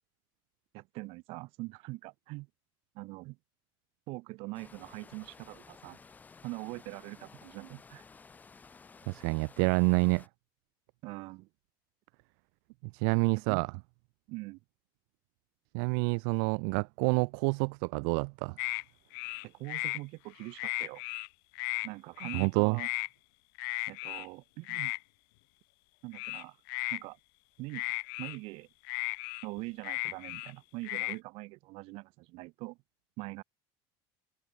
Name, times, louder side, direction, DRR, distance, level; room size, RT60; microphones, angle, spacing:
voice 1, 0.7-2.5 2.9-3.4 4.1-6.0 6.4-8.0 11.0-11.5 13.4-13.6 14.3-14.6 19.4-21.0 21.8-22.9 23.9-24.9 26.0-26.6 26.9-27.2 27.6-27.9 28.2-28.7 29.4-32.8 33.2-33.4, right 23 dB, 55° right, 4.0 m, -43 dB
sound 1, 4.5-10.3, left 5 dB, 15° left, 6.1 m, -55 dB
voice 2, 9.1-10.2 12.9-13.7 15.7-18.5 22.3-22.8, right 40 dB or more, 75° right, 0.7 m, -28 dB
sound 2, 18.6-18.8 19.1-20.0 20.4-21.3 21.5-21.9 22.2-22.5 22.8-23.1 23.6-24.3 24.7-25.0 26.1-27.0 27.7-28.4 28.8-30.5 30.8-31.2, left 29 dB, 85° left, 0.6 m, -35 dB
cardioid pair, 170°, 11 cm